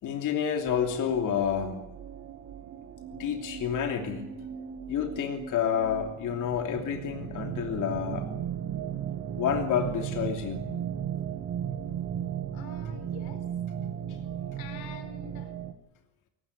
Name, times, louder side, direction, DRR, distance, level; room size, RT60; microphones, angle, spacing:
voice 1, 0.0-1.8 3.2-4.3 4.9-8.3 9.4-10.6, left 8 dB, 40° left, 4 dB, 3.0 m, -29 dB
sound 1, 0.6-15.7, right 9 dB, 30° right, 1.5 m, -36 dB
voice 2, 12.5-13.5 14.2-15.5, left 8 dB, 80° left, 11 dB, 4.1 m, -47 dB
23.0 x 19.0 x 9.7 m, 0.87 s
cardioid pair, 175°, 45 cm